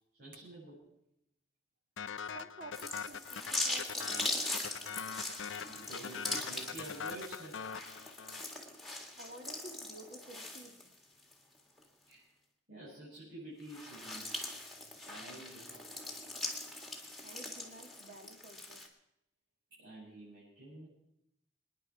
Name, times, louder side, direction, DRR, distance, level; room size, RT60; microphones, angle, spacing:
voice 1, 0.2-0.8 5.6-7.6 12.1-12.2 12.7-14.3 14.9-15.8 16.1-16.2 19.8-20.9, right 2 dB, 60° right, -9 dB, 6.8 m, -49 dB
sound 1, 2.0-8.6, left 6 dB, 85° left, 0.6 m, -43 dB
voice 2, 2.3-4.7 9.2-10.9 17.2-18.8, right 2 dB, 45° right, 5 dB, 1.8 m, -52 dB
sound 2, 2.7-11.3 11.8-11.9 13.6-18.9, left 2 dB, ahead, 1.9 m, -41 dB
26.5 x 10.0 x 4.6 m, 0.81 s
head